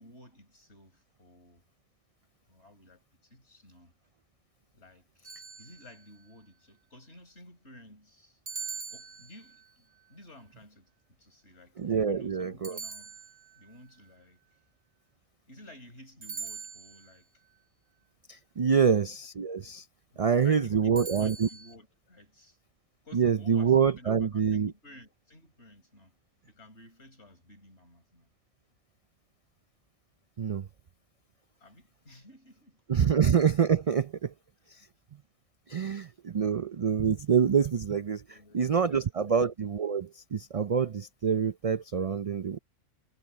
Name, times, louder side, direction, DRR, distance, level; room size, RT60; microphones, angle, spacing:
voice 1, 0.0-1.7 2.5-3.9 4.7-8.4 8.9-11.8 12.1-13.2 13.6-14.4 15.5-17.3 18.8-19.0 20.1-22.6 23.1-26.2 26.4-28.3 31.6-32.8 35.8-36.2 38.3-39.4, left 1 dB, 65° left, 5.2 m, -54 dB
sound 1, 5.2-6.2 8.5-9.7 12.6-13.7 16.2-17.2 21.0-21.7, right 5 dB, 80° right, 2.1 m, -42 dB
voice 2, 11.8-12.8 18.3-19.8 20.2-21.5 23.1-24.7 30.4-30.7 32.9-34.3 35.7-38.2 38.5-42.6, right 7 dB, 50° right, 0.4 m, -26 dB
omnidirectional pair, 1.2 m